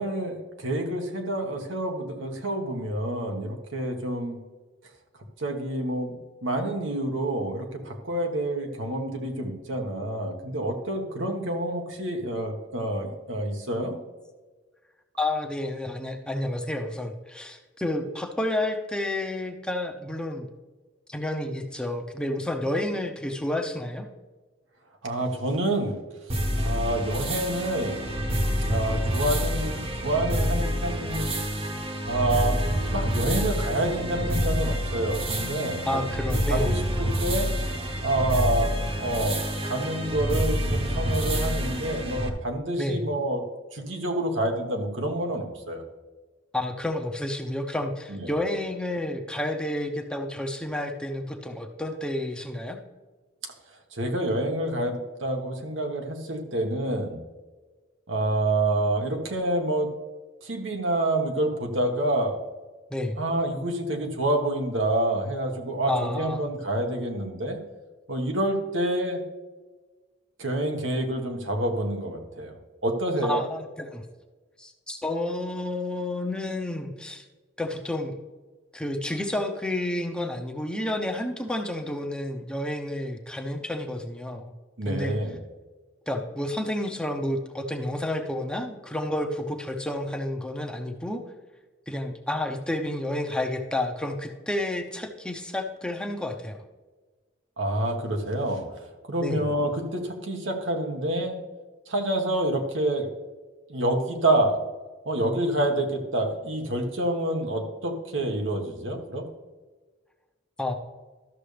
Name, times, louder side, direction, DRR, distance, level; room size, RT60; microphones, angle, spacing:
voice 1, 0.0-4.4 5.4-6.2 6.4-14.0 25.0-26.0 26.3-28.0 28.7-31.4 32.0-32.6 32.9-36.0 36.5-37.5 38.0-39.4 39.6-43.4 43.7-45.8 48.1-48.3 53.9-57.2 58.1-59.9 60.4-62.4 63.2-67.6 68.1-69.2 70.4-73.4 84.8-85.4 97.6-101.4 101.9-103.1 103.7-104.6 105.0-109.3, right 1 dB, 85° right, 3 dB, 1.5 m, -28 dB
voice 2, 15.2-20.5 21.1-24.1 35.8-36.8 42.8-43.1 46.5-52.8 62.9-63.2 65.9-66.6 73.2-74.0 74.6-77.2 77.6-78.2 78.7-84.5 84.9-85.2 86.1-91.2 91.9-96.6 99.2-99.5 110.6-110.7, left 1 dB, 5° left, 3 dB, 0.8 m, -30 dB
sound 1, 26.3-42.3, equal, 30° right, 1.1 m, -27 dB
13.0 x 6.7 x 3.4 m, 1.3 s
head